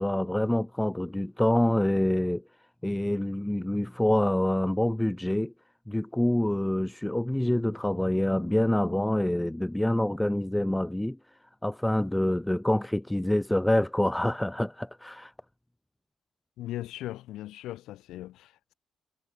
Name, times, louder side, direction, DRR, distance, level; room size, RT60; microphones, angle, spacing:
voice 1, 0.0-2.4 2.8-5.5 5.9-11.2 11.6-15.3, left 1 dB, 5° left, 0.5 m, -26 dB
voice 2, 16.6-18.7, left 15 dB, 85° left, 2.9 m, -39 dB
cardioid pair, 90°, 0 cm